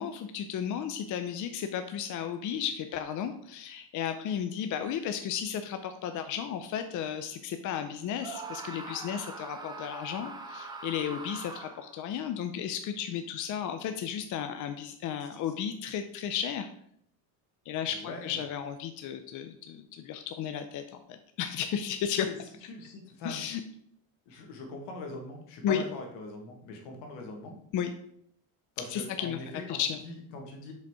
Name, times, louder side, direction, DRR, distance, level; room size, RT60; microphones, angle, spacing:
voice 1, 0.0-16.7 17.7-22.3 23.2-23.6 25.6-25.8 27.7-27.9 28.9-29.4 29.7-30.0, left 8 dB, 45° left, 8 dB, 0.5 m, -34 dB
Screaming, 8.2-12.0, right 3 dB, 10° right, 0.9 m, -42 dB
voice 2, 18.0-18.4 22.3-22.4 22.7-23.4 24.3-27.5 28.8-30.7, left 2 dB, 75° left, 2 dB, 1.7 m, -42 dB
5.2 x 4.1 x 4.7 m, 0.69 s
cardioid pair, 115°, 42 cm